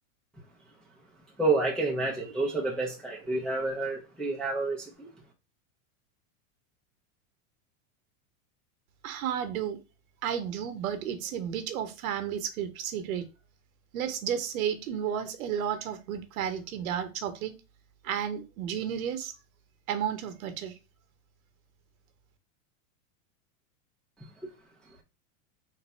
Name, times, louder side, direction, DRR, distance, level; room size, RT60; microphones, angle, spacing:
voice 1, 1.4-5.1, right 3 dB, ahead, 0.4 m, -29 dB
voice 2, 9.0-9.8 10.2-13.3 13.9-17.5 18.0-19.3 19.9-20.7, right 9 dB, 80° right, 0.9 m, -32 dB
3.3 x 2.6 x 4.3 m
supercardioid pair, 140°, 42 cm